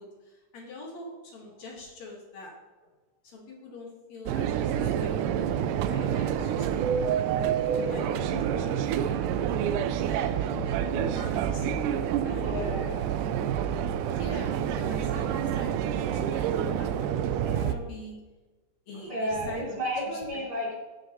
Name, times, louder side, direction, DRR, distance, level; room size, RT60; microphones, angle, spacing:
voice 1, 0.0-2.5 3.2-6.7 7.1-10.2 10.4-11.7 12.2-12.6 14.1-18.1 18.9-20.4, left 2 dB, 60° left, -2 dB, 3.0 m, -45 dB
sound 1, 4.3-17.7, right 9 dB, 90° right, 2.1 m, -28 dB
voice 2, 7.8-8.3 12.2-13.1 17.5-17.7 19.1-20.7, equal, 30° right, -5 dB, 3.7 m, -33 dB
16.5 x 8.0 x 3.0 m, 1.2 s
omnidirectional pair, 3.6 m